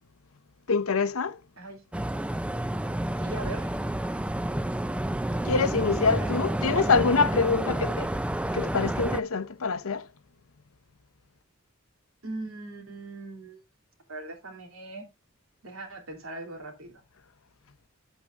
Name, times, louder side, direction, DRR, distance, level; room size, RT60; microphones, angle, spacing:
voice 1, 0.7-1.4 5.4-8.1 8.5-10.1, left 4 dB, 90° left, 0.8 m, -25 dB
sound 1, 1.9-9.2, right 1 dB, 5° right, 0.3 m, -29 dB
voice 2, 3.2-3.7 6.2-6.6 12.2-13.6 14.1-15.1 15.6-16.9, right 2 dB, 85° right, 3.1 m, -40 dB
10.5 x 8.2 x 2.5 m
head